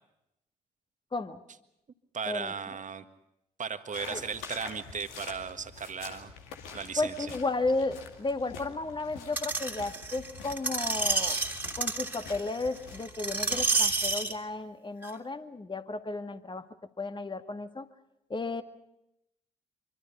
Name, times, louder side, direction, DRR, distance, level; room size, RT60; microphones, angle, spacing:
voice 1, 2.1-3.0 3.6-6.3 6.7-7.3, right 6 dB, 40° right, 9 dB, 1.8 m, -36 dB
sound 1, 3.9-14.1, left 5 dB, 75° left, 2.4 m, -47 dB
voice 2, 7.0-11.4 11.8-16.7 17.0-17.9 18.3-18.6, left 3 dB, 25° left, 9 dB, 2.0 m, -33 dB
Screech, 9.4-14.3 15.0-15.1, right 3 dB, 10° right, 2.9 m, -30 dB
25.5 x 24.5 x 5.5 m, 0.83 s
figure-of-eight pair, 45°, 20 cm